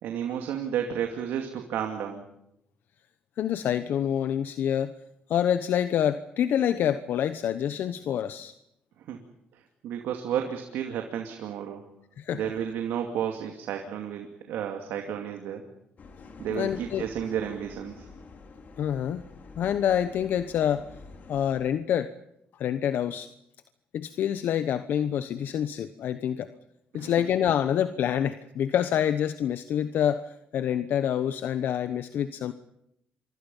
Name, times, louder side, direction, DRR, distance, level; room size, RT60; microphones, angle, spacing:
voice 1, 0.0-2.2 9.0-9.2 9.5-11.8 12.3-15.6 16.4-18.1 26.9-27.1, right 9 dB, 80° right, 4 dB, 2.4 m, -32 dB
voice 2, 3.4-4.9 5.3-8.5 12.2-12.4 16.5-17.1 18.8-19.2 19.6-20.9 21.3-22.1 22.6-23.3 23.9-26.5 26.9-32.5, left 9 dB, 70° left, 11 dB, 1.0 m, -27 dB
sound 1, 16.0-21.6, left 4 dB, 55° left, 4.1 m, -48 dB
29.0 x 24.5 x 5.5 m, 0.82 s
supercardioid pair, 65°, 3 cm